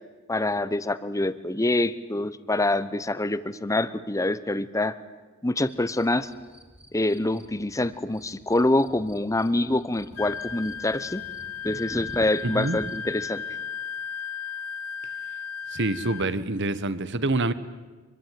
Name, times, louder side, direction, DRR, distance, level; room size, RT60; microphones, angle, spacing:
voice 1, 0.3-4.9 5.4-6.3 6.9-11.2 11.6-13.4, left 2 dB, 15° left, 15 dB, 0.9 m, -25 dB
sound 1, 5.7-13.2, equal, 10° right, 2.9 m, -47 dB
Wind instrument woodwind instrument, 10.2-16.4, left 7 dB, 70° left, 0.8 m, -35 dB
voice 2, 12.4-12.8 15.7-17.5, right 2 dB, 55° right, 15 dB, 1.4 m, -26 dB
25.5 x 23.0 x 9.3 m, 1.3 s
head